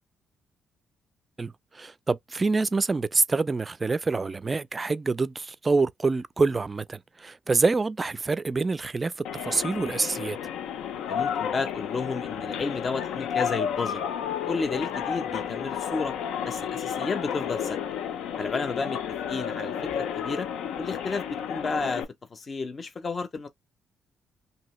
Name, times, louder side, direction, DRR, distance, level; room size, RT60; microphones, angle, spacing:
voice 1, 1.4-9.1 9.4-10.4, right 3 dB, 25° right, 0.3 m, -26 dB
sound 1, 9.2-22.0, left 8 dB, 85° left, 0.5 m, -32 dB
voice 2, 11.1-14.0 14.4-16.1 16.4-17.8 18.4-19.0 19.3-20.5 20.8-22.0 22.3-23.5, left 4 dB, 40° left, 0.6 m, -32 dB
2.8 x 2.7 x 3.1 m
cardioid pair, 90°, 0 cm